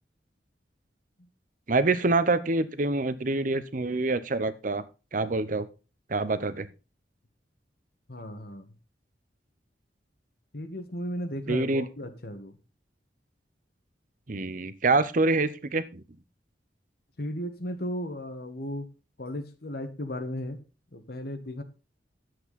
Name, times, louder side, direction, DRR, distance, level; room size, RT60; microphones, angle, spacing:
voice 1, 1.7-4.8 5.1-5.7 6.1-6.7 11.5-11.9 14.3-16.0, right 3 dB, 50° right, 14 dB, 0.8 m, -26 dB
voice 2, 8.1-8.7 10.5-12.5 17.2-18.9 19.2-20.6 20.9-21.6, equal, 60° left, 8 dB, 1.6 m, -35 dB
11.0 x 7.9 x 4.1 m, 0.32 s
head